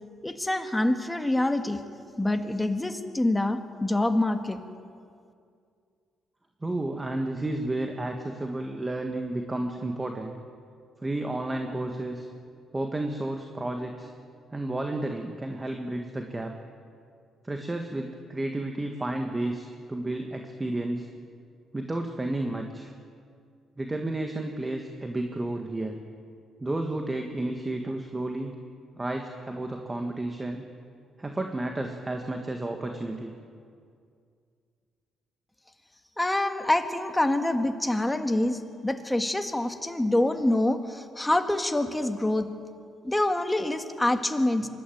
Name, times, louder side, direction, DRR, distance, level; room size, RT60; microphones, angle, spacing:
voice 1, 0.2-1.8 2.2-4.6 36.2-42.5 43.0-44.7, left 1 dB, 10° left, 7 dB, 1.7 m, -26 dB
voice 2, 6.6-10.3 11.0-12.3 12.7-14.1 14.5-16.5 17.4-21.1 21.7-22.9 23.8-25.9 26.6-28.5 28.9-30.6 31.2-33.3, right 2 dB, 20° right, 4 dB, 1.6 m, -32 dB
24.0 x 12.5 x 9.3 m, 2.3 s
cardioid pair, 90°, 0 cm